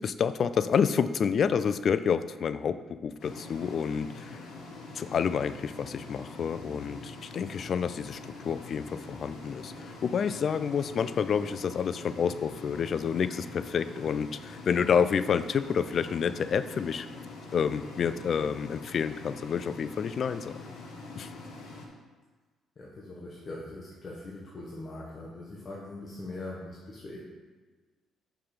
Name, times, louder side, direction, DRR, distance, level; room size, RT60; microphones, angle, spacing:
voice 1, 0.0-4.5 4.9-17.1 17.5-20.5 21.2-21.3, left 7 dB, 50° left, 13 dB, 0.3 m, -29 dB
sound 1, 3.2-21.9, left 3 dB, 75° left, 1.4 m, -44 dB
voice 2, 22.7-27.3, left 2 dB, 35° left, -5 dB, 1.3 m, -41 dB
5.9 x 5.6 x 5.1 m, 1.3 s
cardioid pair, 95°, 0 cm